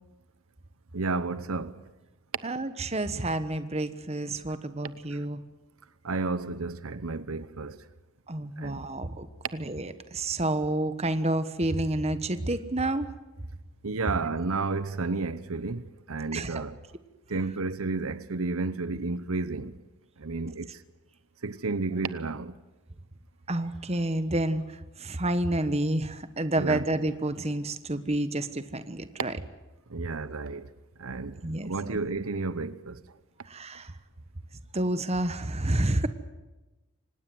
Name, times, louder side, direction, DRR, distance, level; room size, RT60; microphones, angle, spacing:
voice 1, 0.9-1.8 5.1-5.3 6.0-7.8 8.6-8.8 13.8-16.8 17.3-19.8 20.2-20.8 21.4-22.5 26.6-26.8 29.3-29.4 29.9-30.7 31.0-33.0, right 3 dB, 75° right, 0.9 m, -32 dB
voice 2, 2.4-5.4 8.3-9.3 9.5-13.1 16.3-16.6 23.5-24.6 25.0-29.3 31.4-32.0 33.5-33.9 34.7-36.1, right 1 dB, 30° right, 1.2 m, -29 dB
25.0 x 19.5 x 7.9 m
head